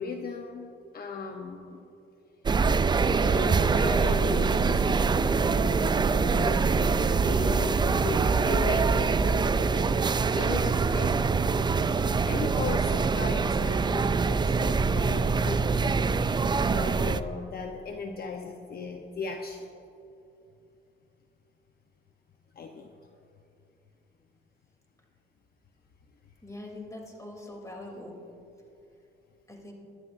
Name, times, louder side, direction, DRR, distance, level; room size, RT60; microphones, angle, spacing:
voice 1, 0.0-1.9 3.2-10.0 10.3-11.2 11.9-15.7 16.6-19.7 22.5-22.9, left 4 dB, 50° left, 3 dB, 0.9 m, -37 dB
sound 1, 2.5-17.2, right 4 dB, 20° right, 0.4 m, -24 dB
voice 2, 26.4-28.1 29.5-29.7, left 1 dB, 15° left, 0 dB, 3.2 m, -42 dB
24.0 x 11.0 x 2.7 m, 2.8 s
cardioid pair, 90°, 20 cm